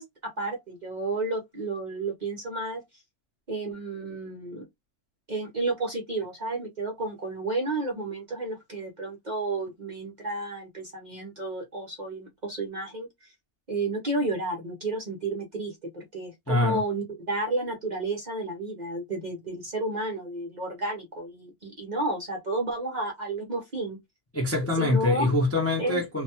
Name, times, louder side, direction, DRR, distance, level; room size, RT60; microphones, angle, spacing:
voice 1, 0.0-2.8 3.5-4.7 5.3-13.3 13.7-24.0 24.8-25.3 25.8-26.0, right 2 dB, 40° right, 0.6 m, -31 dB
voice 2, 16.5-16.8 24.3-26.2, left 2 dB, 25° left, 0.3 m, -24 dB
2.6 x 2.2 x 2.7 m
omnidirectional pair, 1.6 m